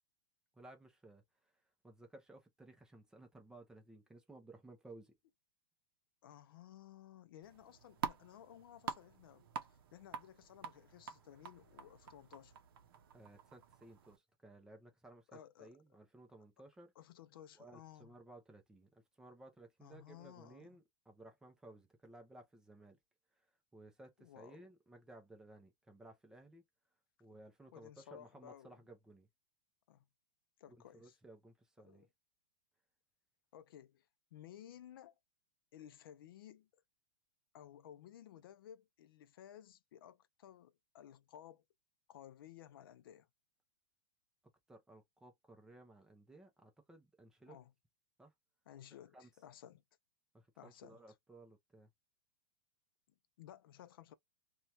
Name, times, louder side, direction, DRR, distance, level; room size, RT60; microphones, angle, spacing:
voice 1, 0.5-1.5 1.8-5.2 13.1-16.9 17.5-23.0 23.4-23.5 23.7-26.6 27.2-29.3 30.7-32.1 44.7-47.6 48.2-48.3 49.1-49.3 50.3-51.9, right 2 dB, 5° right, 0.5 m, -58 dB
voice 2, 6.2-9.5 9.9-12.6 15.3-15.7 17.0-18.1 19.8-20.8 24.2-24.7 27.7-28.7 29.9-30.1 30.6-31.2 31.8-32.1 33.5-35.1 35.7-36.7 37.5-41.6 42.1-43.3 47.5-47.7 48.7-49.8 50.6-51.0 53.4-54.1, left 11 dB, 65° left, 0.5 m, -56 dB
sound 1, 7.4-14.2, right 7 dB, 65° right, 0.6 m, -47 dB
2.9 x 2.3 x 2.8 m
supercardioid pair, 165°, 13 cm